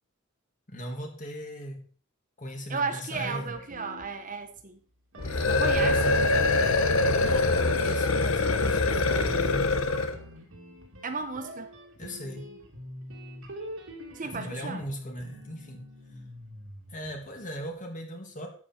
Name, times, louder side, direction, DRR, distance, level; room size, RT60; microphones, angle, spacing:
voice 1, 0.7-1.8 2.4-3.6 5.2-5.5 7.1-9.7 12.0-12.5 14.2-15.9 16.9-18.5, equal, 40° left, 3 dB, 2.5 m, -39 dB
voice 2, 2.7-4.8 5.4-6.2 11.0-11.7 14.1-14.8, right 4 dB, 40° right, 7 dB, 1.1 m, -34 dB
sound 1, 3.1-4.6 5.1-17.4, equal, 75° right, 2.7 m, -44 dB
sound 2, 5.2-10.2, left 2 dB, 85° left, 1.2 m, -24 dB
12.0 x 7.8 x 4.4 m, 0.42 s
head